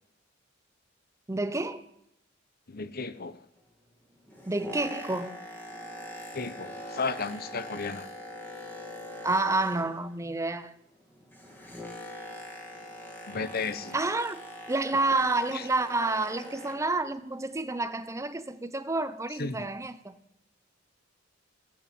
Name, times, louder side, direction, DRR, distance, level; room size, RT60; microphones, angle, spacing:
voice 1, 1.3-1.9 4.5-5.4 9.2-10.7 13.9-20.2, right 2 dB, 15° right, 0.7 m, -29 dB
voice 2, 2.7-3.4 6.3-8.1 13.3-14.0 15.5-15.6 19.4-19.7, left 4 dB, 50° left, 0.9 m, -34 dB
Boat Water vehicle, 4.1-10.2 10.5-17.0 17.6-17.7, equal, 10° left, 3.2 m, -43 dB
16.0 x 8.9 x 8.7 m
head